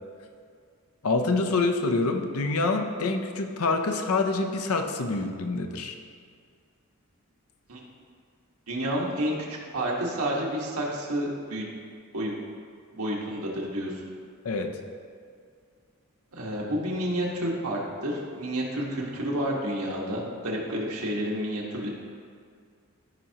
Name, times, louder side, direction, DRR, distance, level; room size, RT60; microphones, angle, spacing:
voice 1, 1.0-6.0 14.4-14.7, left 3 dB, 80° left, 5 dB, 0.7 m, -26 dB
voice 2, 8.7-11.6 12.1-12.3 12.9-13.9 16.3-21.9, equal, 80° right, -3 dB, 1.6 m, -30 dB
14.0 x 5.5 x 2.9 m, 2.2 s
head